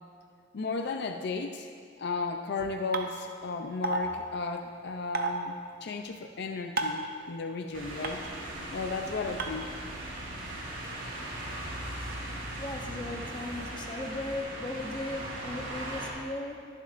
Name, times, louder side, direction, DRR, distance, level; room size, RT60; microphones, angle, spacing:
voice 1, 0.5-1.7 2.0-8.3 8.7-9.7, left 3 dB, 60° left, 5 dB, 0.5 m, -34 dB
sound 1, 2.9-3.0 3.8-4.0 5.1-5.3 6.8-7.0 8.0-8.1 9.4-9.5, right 3 dB, 50° right, 0.7 m, -28 dB
sound 2, 7.7-16.1, right 1 dB, 80° right, 2.7 m, -39 dB
voice 2, 12.6-16.7, left 2 dB, 25° left, 1 dB, 0.7 m, -37 dB
21.5 x 7.3 x 2.5 m, 2.2 s
head